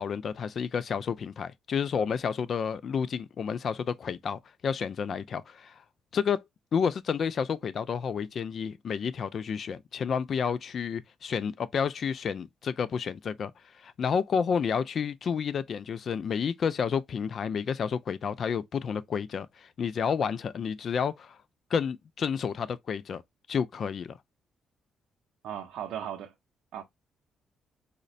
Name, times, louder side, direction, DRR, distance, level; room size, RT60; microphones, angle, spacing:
voice 1, 0.0-5.8 6.1-6.4 6.7-13.5 13.8-21.4 21.7-23.2 23.5-24.1, left 6 dB, 55° left, 0.3 m, -30 dB
voice 2, 25.4-26.3 26.7-26.8, right 9 dB, 80° right, 0.5 m, -36 dB
4.8 x 2.1 x 2.5 m
cardioid pair, 90°, 0 cm